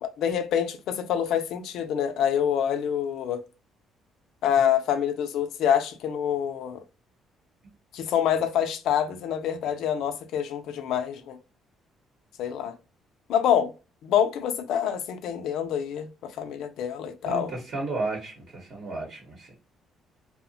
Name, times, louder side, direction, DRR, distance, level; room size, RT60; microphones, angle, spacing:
voice 1, 0.0-3.4 4.4-6.8 7.9-11.4 12.4-12.7 13.3-13.7 14.0-17.5, left 9 dB, 70° left, 0.4 m, -26 dB
voice 2, 17.2-19.5, right 3 dB, 45° right, 0.9 m, -33 dB
2.8 x 2.0 x 2.6 m
cardioid pair, 160°, 0 cm